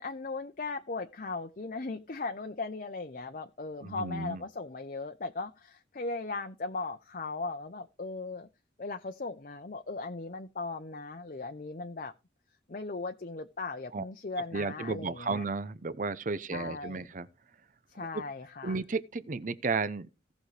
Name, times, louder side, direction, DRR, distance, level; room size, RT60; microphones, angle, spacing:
voice 1, 0.0-8.5 8.8-12.1 12.7-15.4 16.5-17.1 17.9-18.8, left 3 dB, 45° left, 0.7 m, -38 dB
voice 2, 3.8-4.4 13.9-14.0 14.5-17.3 18.1-18.2 18.6-20.1, right 4 dB, 45° right, 0.6 m, -33 dB
17.0 x 6.3 x 3.3 m
head